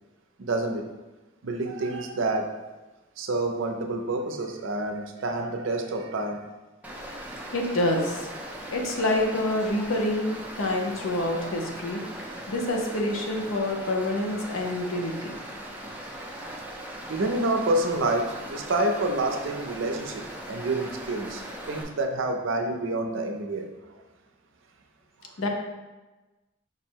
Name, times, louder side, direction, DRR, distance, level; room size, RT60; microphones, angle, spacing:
voice 1, 0.4-0.9 1.4-2.5 3.2-6.4 17.1-21.4 21.7-24.0 25.2-25.3, right 2 dB, 65° right, 4 dB, 0.5 m, -28 dB
Stream, 6.8-21.8, right 1 dB, 10° right, 0.5 m, -39 dB
voice 2, 7.5-8.2 8.7-12.0 12.5-15.3 25.4-25.5, left 1 dB, 85° left, 2 dB, 0.7 m, -27 dB
5.1 x 2.1 x 4.4 m, 1.2 s
head